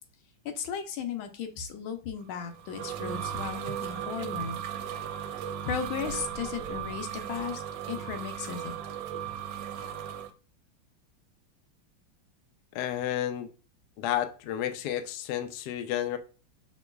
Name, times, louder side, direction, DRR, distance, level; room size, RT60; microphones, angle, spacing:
voice 1, 0.4-4.6 5.7-8.8, left 7 dB, 90° left, 1.5 m, -36 dB
sound 1, 2.3-10.3, right 9 dB, 75° right, 1.2 m, -36 dB
voice 2, 12.7-13.5 14.0-16.2, left 11 dB, 75° left, 0.9 m, -31 dB
5.5 x 3.1 x 2.2 m
omnidirectional pair, 2.2 m